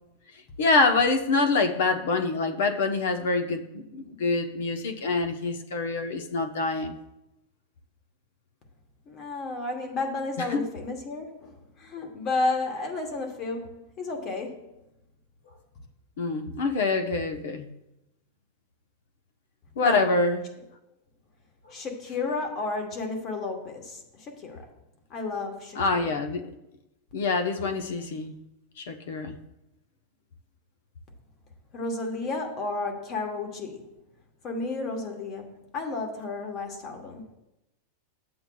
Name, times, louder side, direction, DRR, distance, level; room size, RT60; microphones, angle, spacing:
voice 1, 0.6-7.0 10.5-10.7 16.2-17.7 19.8-20.5 25.8-26.5 27.1-28.3 28.8-29.4, left 3 dB, 75° left, 0.9 m, -26 dB
voice 2, 9.1-14.7 19.8-20.0 21.7-24.6 25.1-26.2 31.7-33.8 34.4-37.3, left 3 dB, 30° left, 1.2 m, -32 dB
12.0 x 7.7 x 2.3 m
supercardioid pair, 165°, 0 cm